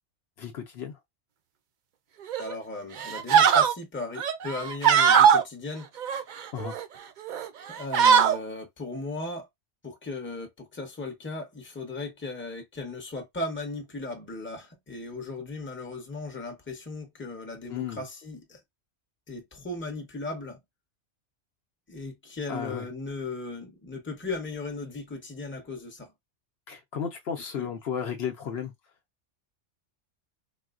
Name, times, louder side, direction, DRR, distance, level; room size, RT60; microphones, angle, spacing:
voice 1, 0.4-1.0 6.5-6.8 17.7-18.0 22.5-22.9 26.7-28.7, left 7 dB, 65° left, 0.8 m, -34 dB
sound 1, 2.3-2.5 3.0-3.7 4.2-5.4 6.0-6.8 7.3-7.5 7.7-8.4, right 8 dB, 60° right, 0.5 m, -20 dB
voice 2, 2.4-5.9 7.7-9.5 9.8-18.6 19.3-20.6 21.9-26.1 27.4-27.7, left 3 dB, 10° left, 0.7 m, -37 dB
3.9 x 2.0 x 2.4 m
omnidirectional pair, 1.2 m